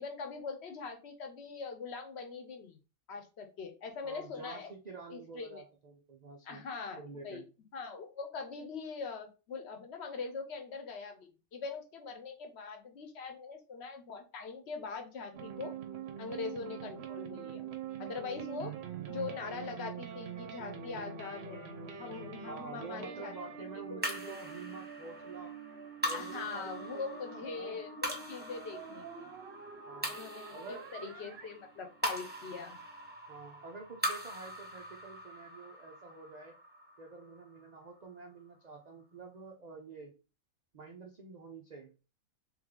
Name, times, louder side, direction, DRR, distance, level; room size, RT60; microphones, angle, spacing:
voice 1, 0.0-2.8 3.1-4.7 5.1-5.6 6.4-7.4 7.7-15.7 16.2-17.6 18.0-18.7 19.1-23.3 23.9-24.4 26.1-29.3 30.1-32.8, left 4 dB, 55° left, 6 dB, 1.0 m, -42 dB
voice 2, 4.0-6.6 7.0-7.5 18.4-18.5 22.5-25.6 26.0-27.8 29.9-30.2 30.5-31.4 33.3-36.6 37.0-40.2 40.7-42.0, right 4 dB, 90° right, 2 dB, 0.3 m, -48 dB
sound 1, 15.3-33.1, right 7 dB, 60° right, 0.8 m, -45 dB
sound 2, 24.0-38.5, equal, 10° right, 1.0 m, -42 dB
3.5 x 3.2 x 3.6 m, 0.32 s
omnidirectional pair, 1.5 m